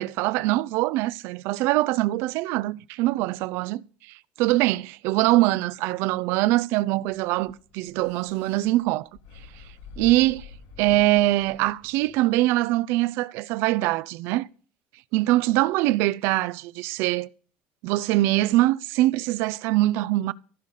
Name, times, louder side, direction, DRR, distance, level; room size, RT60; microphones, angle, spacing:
voice 1, 0.0-3.8 4.4-9.1 10.0-10.5 10.8-14.5 15.1-17.3 17.8-20.3, right 17 dB, 60° right, 0.5 m, -23 dB
sound 1, 7.0-12.2, left 5 dB, 85° left, 3.4 m, -47 dB
15.5 x 5.4 x 6.5 m
cardioid pair, 160°, 5 cm